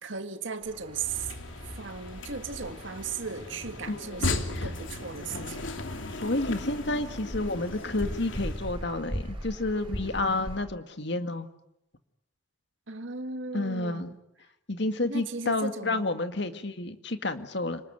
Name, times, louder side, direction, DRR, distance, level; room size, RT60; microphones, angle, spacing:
voice 1, 0.0-1.3 1.6-5.7 12.9-14.2 15.1-16.1, right 5 dB, 75° right, 1.8 m, -36 dB
sound 1, 0.6-10.6, equal, 25° right, 7.6 m, -41 dB
sound 2, 0.9-8.8, left 2 dB, 80° left, 2.7 m, -37 dB
voice 2, 3.9-4.3 4.5-4.7 6.1-11.5 13.5-14.1 14.7-17.8, left 2 dB, 60° left, 2.0 m, -30 dB
30.0 x 20.0 x 9.3 m
head